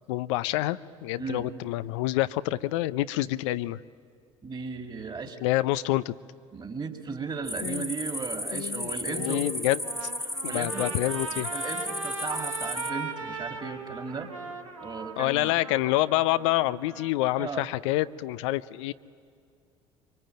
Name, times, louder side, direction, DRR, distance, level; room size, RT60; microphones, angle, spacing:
voice 1, 0.1-3.8 5.4-6.1 7.6-7.9 8.5-10.1 10.4-11.5 15.2-18.9, left 16 dB, 70° left, 14 dB, 0.6 m, -27 dB
voice 2, 4.4-5.4 6.5-9.4 10.4-10.9 11.3-14.3 14.8-15.5 17.4-17.7, right 4 dB, 30° right, 6 dB, 3.2 m, -36 dB
sound 1, 7.5-12.9, left 1 dB, ahead, 1.8 m, -34 dB
Trumpet, 9.6-17.1, right 4 dB, 90° right, 1.9 m, -39 dB
24.5 x 23.5 x 9.0 m, 2.3 s
hypercardioid pair, 60°, 16 cm